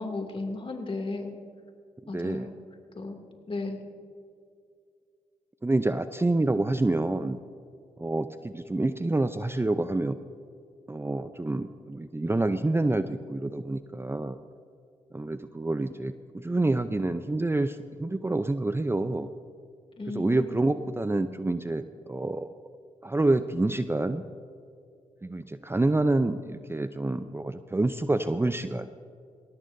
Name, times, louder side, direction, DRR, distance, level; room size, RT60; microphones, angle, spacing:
voice 1, 0.0-1.4 2.1-2.6 2.9-3.2 3.5-3.8 20.0-20.6, left 3 dB, 35° left, 4 dB, 2.6 m, -34 dB
voice 2, 2.1-2.5 5.6-7.4 8.0-10.2 10.9-14.4 15.1-19.3 20.1-22.5 23.0-24.2 25.2-28.9, right 2 dB, 15° right, 11 dB, 0.6 m, -27 dB
20.5 x 18.5 x 2.7 m, 2.4 s
hypercardioid pair, 40°, 15 cm